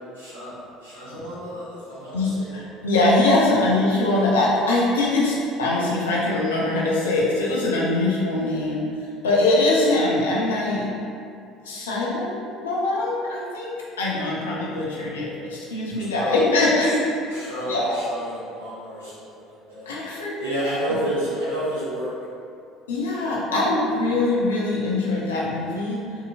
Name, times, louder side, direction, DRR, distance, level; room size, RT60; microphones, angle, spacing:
voice 1, 0.1-2.5 3.4-3.8 15.9-17.0 17.3-19.9 20.4-22.1, equal, 80° right, -11 dB, 1.2 m, -31 dB
voice 2, 2.1-8.8 9.2-10.9 11.6-17.3 17.6-18.0 19.9-20.4 20.6-20.9 22.9-26.0, left 2 dB, 75° left, -5 dB, 0.6 m, -22 dB
3.7 x 2.8 x 2.5 m, 2.5 s
figure-of-eight pair, 60°, 0 cm